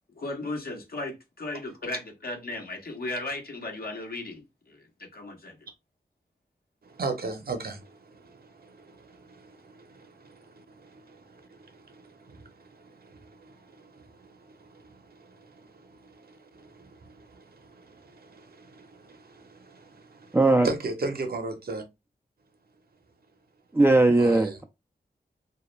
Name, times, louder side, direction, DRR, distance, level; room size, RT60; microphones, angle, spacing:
voice 1, 0.2-5.6, left 2 dB, 60° left, 0.9 m, -36 dB
voice 2, 6.8-20.4 20.6-21.8 24.1-24.6, right 3 dB, 60° right, 0.7 m, -39 dB
voice 3, 20.3-20.7 23.7-24.6, right 2 dB, 10° right, 0.4 m, -19 dB
2.3 x 2.1 x 3.0 m
cardioid pair, 45°, 18 cm